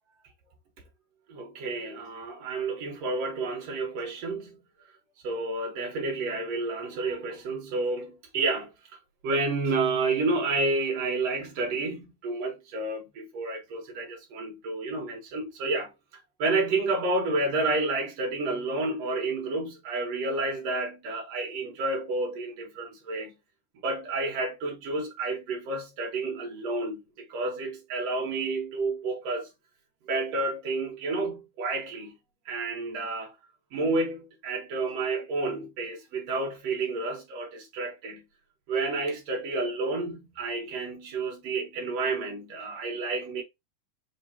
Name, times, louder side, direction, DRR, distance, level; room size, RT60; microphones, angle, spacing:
voice 1, 1.3-4.6 5.2-8.7 9.2-23.4 23.8-29.5 30.1-32.2 32.5-33.4 33.7-38.3 38.7-43.4, right 3 dB, 60° right, 1.8 m, -30 dB
5.6 x 2.9 x 2.7 m
omnidirectional pair, 4.3 m